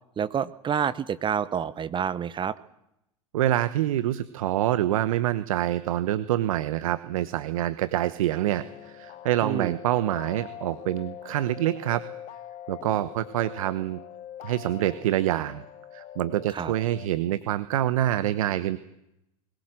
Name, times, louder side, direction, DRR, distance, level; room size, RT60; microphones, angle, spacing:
voice 1, 0.2-2.5 9.4-9.8 16.5-16.7, right 8 dB, 25° right, 16 dB, 0.9 m, -28 dB
voice 2, 3.3-12.0 12.7-14.0 14.4-15.6 15.9-18.8, right 13 dB, 70° right, 15 dB, 1.0 m, -26 dB
sound 1, 8.6-17.1, left 11 dB, 45° left, 1.1 m, -43 dB
21.5 x 19.5 x 7.7 m, 0.83 s
hypercardioid pair, 90°, 18 cm